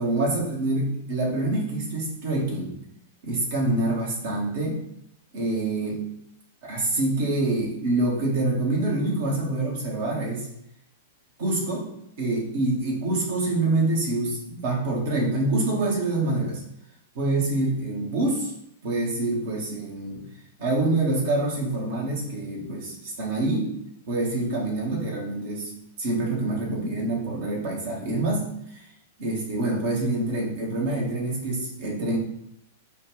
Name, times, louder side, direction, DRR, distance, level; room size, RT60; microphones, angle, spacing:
voice 1, 0.0-2.8 3.2-4.8 5.3-6.0 6.6-10.5 11.4-11.9 12.2-16.6 17.1-18.5 18.8-20.2 20.6-23.7 24.1-25.7 26.0-28.8 29.2-32.2, right 2 dB, 55° right, -2 dB, 1.3 m, -26 dB
5.0 x 2.5 x 3.2 m, 0.77 s
figure-of-eight pair, 100°, 0 cm